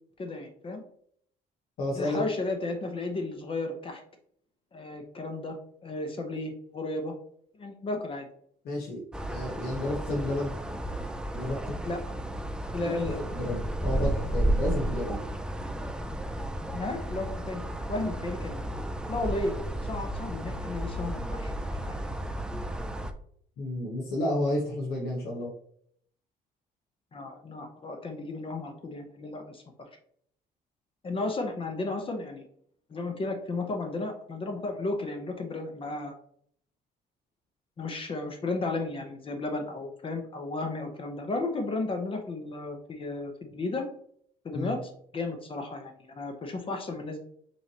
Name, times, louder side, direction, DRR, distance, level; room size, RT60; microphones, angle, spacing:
voice 1, 0.2-0.8 1.9-4.0 4.7-5.6 5.8-7.1 7.6-8.3 11.8-12.0 12.7-13.2 16.7-17.6 17.9-18.7 19.1-21.5 21.8-22.1 27.1-29.6 31.0-32.4 32.9-36.1 37.8-43.9 44.4-44.8 45.1-47.2, left 2 dB, 30° left, 5 dB, 0.8 m, -34 dB
voice 2, 1.8-2.2 8.6-9.0 9.3-10.6 11.3-11.7 12.8-15.2 23.6-25.5 44.5-44.8, left 1 dB, 65° left, -3 dB, 1.2 m, -31 dB
sound 1, 9.1-23.1, right 1 dB, 5° right, 0.4 m, -33 dB
5.3 x 3.3 x 2.8 m, 0.64 s
cardioid pair, 110°, 17 cm